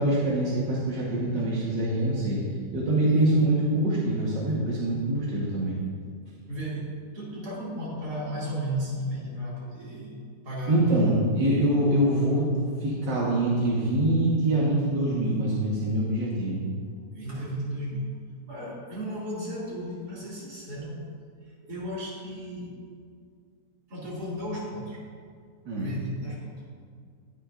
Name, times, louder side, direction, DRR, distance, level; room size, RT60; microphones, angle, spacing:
voice 1, 0.0-2.4 2.7-5.8 10.7-12.5 12.8-16.6 25.7-25.9, right 1 dB, 90° right, -6 dB, 2.0 m, -24 dB
voice 2, 3.1-3.4 6.5-10.2 10.4-10.9 17.1-18.1 18.5-21.1 21.4-22.8 23.9-25.0 25.8-26.6, equal, 70° right, -7 dB, 3.1 m, -34 dB
19.0 x 6.3 x 2.5 m, 2.1 s
omnidirectional pair, 1.8 m